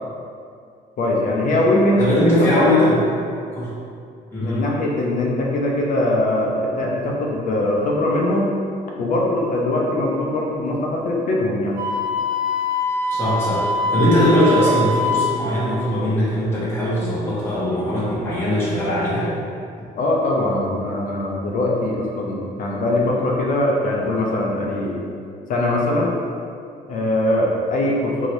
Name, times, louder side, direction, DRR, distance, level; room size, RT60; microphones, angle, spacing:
voice 1, 1.0-2.9 4.4-8.5 9.0-11.8 13.9-14.0 20.0-25.0 25.5-26.1 26.9-28.3, left 1 dB, 50° left, -2 dB, 0.5 m, -21 dB
voice 2, 2.0-3.0 3.5-3.7 4.3-4.7 13.1-19.4, left 1 dB, 15° left, -9 dB, 0.8 m, -20 dB
Wind instrument woodwind instrument, 11.8-15.5, left 2 dB, 90° right, 0.8 m, -23 dB
2.7 x 2.7 x 3.1 m, 2.3 s
cardioid pair, 110°, 17 cm